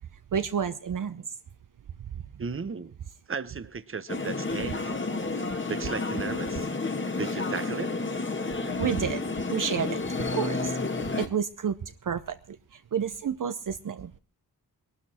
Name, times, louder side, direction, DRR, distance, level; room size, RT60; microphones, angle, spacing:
voice 1, 0.3-1.2 8.8-9.2 9.5-10.0 10.3-10.7 11.2-11.8 12.0-12.4 12.9-14.2, right 7 dB, 55° right, 0.8 m, -29 dB
voice 2, 2.4-2.9 3.3-4.9 5.7-6.7 7.2-7.9, right 5 dB, 35° right, 1.0 m, -35 dB
sound 1, 4.1-11.3, left 3 dB, 30° left, 1.9 m, -31 dB
20.0 x 12.5 x 4.3 m
cardioid pair, 70°, 37 cm